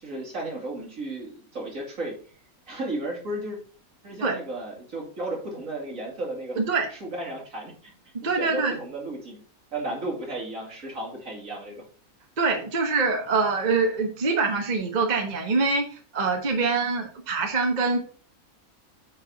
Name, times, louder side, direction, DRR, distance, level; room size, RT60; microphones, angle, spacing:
voice 1, 0.0-2.1 2.7-3.6 4.0-6.6 6.9-7.9 8.2-9.4 9.7-11.8, right 2 dB, 65° right, -2 dB, 3.0 m, -34 dB
voice 2, 6.6-6.9 8.2-8.8 12.4-18.0, right 4 dB, 35° right, 2 dB, 1.1 m, -24 dB
8.6 x 4.8 x 4.0 m, 0.42 s
omnidirectional pair, 1.5 m